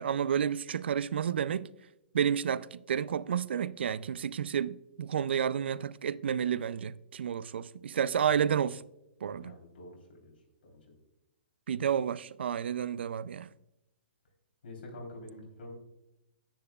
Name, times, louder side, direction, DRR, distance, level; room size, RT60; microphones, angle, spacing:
voice 1, 0.0-1.7 2.1-8.8 9.2-9.6 11.7-13.5, right 8 dB, 85° right, 0.3 m, -31 dB
voice 2, 9.4-10.3 10.6-10.8 14.6-15.8, left 1 dB, 80° left, 3.5 m, -47 dB
10.0 x 9.1 x 2.3 m
hypercardioid pair, 170°, 6 cm